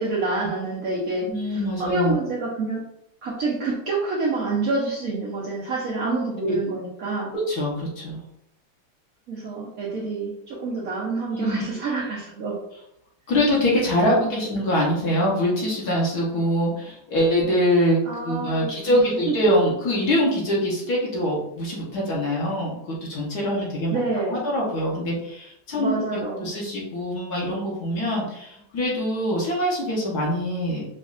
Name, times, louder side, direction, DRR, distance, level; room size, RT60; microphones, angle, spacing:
voice 1, 0.0-2.8 3.2-7.3 9.3-12.6 14.0-14.4 18.1-19.3 23.9-24.4 25.8-26.5, right 3 dB, 60° right, -5 dB, 0.9 m, -27 dB
voice 2, 1.3-2.1 6.4-6.6 7.3-8.2 11.3-11.6 13.3-18.0 18.2-24.0 24.3-30.9, equal, 60° left, -5 dB, 1.5 m, -24 dB
5.1 x 2.4 x 2.4 m, 0.79 s
omnidirectional pair, 2.1 m